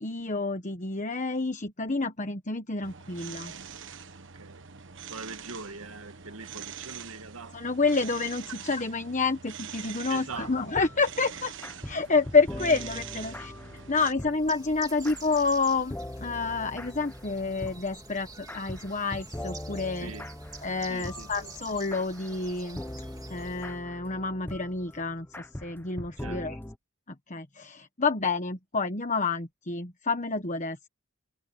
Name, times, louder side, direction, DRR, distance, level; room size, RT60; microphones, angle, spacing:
voice 1, 0.0-3.5 7.5-11.5 11.8-13.5 13.9-20.1 20.6-22.8 23.3-26.6 27.1-30.9, left 4 dB, 35° left, 1.3 m, -29 dB
sound 1, 2.8-14.1, right 7 dB, 60° right, 1.4 m, -44 dB
voice 2, 4.3-4.7 5.0-7.8 10.1-10.5 19.9-20.3 20.9-21.5 26.2-26.5, right 4 dB, 80° right, 1.9 m, -42 dB
sound 2, 10.3-26.8, left 1 dB, 10° left, 0.7 m, -42 dB
Bird, 14.2-23.8, right 3 dB, 20° right, 2.8 m, -47 dB
head